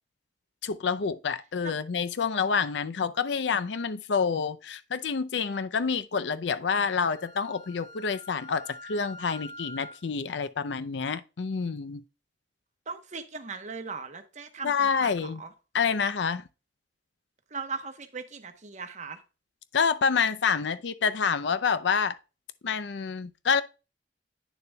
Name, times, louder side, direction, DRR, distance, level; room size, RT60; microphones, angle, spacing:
voice 1, 0.6-12.0 14.6-15.4 15.7-16.4 19.7-22.2 22.6-23.6, left 5 dB, 80° left, 0.5 m, -28 dB
Wind instrument woodwind instrument, 6.7-10.1, left 1 dB, 80° right, 0.7 m, -46 dB
voice 2, 12.9-15.5 17.5-19.2, right 5 dB, 45° right, 0.9 m, -39 dB
9.1 x 6.8 x 2.2 m
head